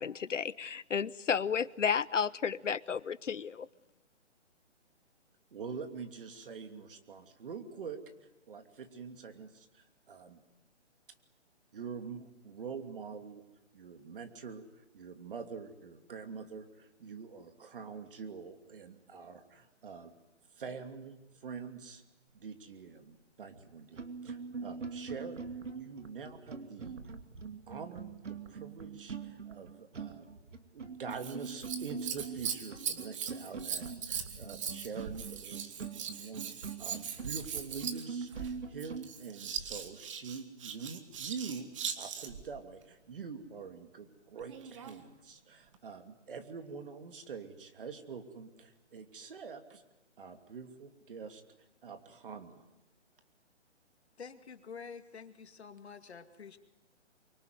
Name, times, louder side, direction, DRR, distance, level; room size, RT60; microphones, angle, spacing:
voice 1, 0.0-3.7, left 7 dB, 90° left, 18 dB, 1.0 m, -32 dB
voice 2, 5.5-8.0 8.5-10.4 11.7-13.4 13.7-20.1 20.6-22.0 22.4-25.5 25.7-27.0 27.7-30.3 30.7-41.7 42.0-49.8 50.2-51.4 51.8-52.6, right 5 dB, 45° right, 7 dB, 2.8 m, -45 dB
sound 1, 23.5-23.6 23.9-39.1, right 5 dB, 80° right, 2.8 m, -43 dB
Scissors, 31.1-42.5 44.4-45.0 45.7-45.8, right 7 dB, 25° right, 1.7 m, -40 dB
voice 3, 54.2-56.6, left 6 dB, 60° left, 7 dB, 2.5 m, -48 dB
24.5 x 24.0 x 9.5 m, 0.95 s
hypercardioid pair, 165°, 36 cm